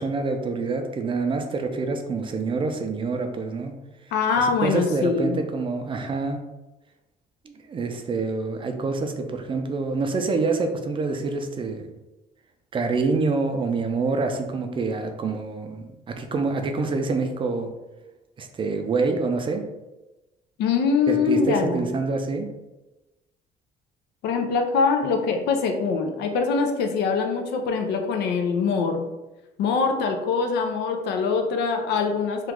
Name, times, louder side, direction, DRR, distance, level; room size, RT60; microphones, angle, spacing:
voice 1, 0.0-3.7 4.4-6.4 7.4-11.9 12.7-17.7 18.4-19.7 21.1-22.5, right 3 dB, 30° right, 5 dB, 0.4 m, -26 dB
voice 2, 4.1-5.4 20.6-21.9 24.2-29.1 29.6-32.5, left 5 dB, 80° left, 4 dB, 0.5 m, -23 dB
2.9 x 2.4 x 3.5 m, 1.0 s
cardioid pair, 110°, 17 cm